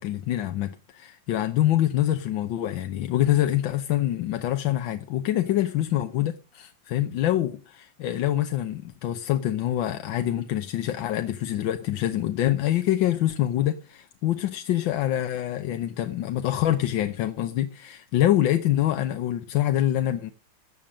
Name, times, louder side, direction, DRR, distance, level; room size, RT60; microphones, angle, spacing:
voice 1, 0.0-20.3, left 13 dB, 90° left, 1.6 m, -25 dB
14.5 x 8.9 x 6.3 m
omnidirectional pair, 2.0 m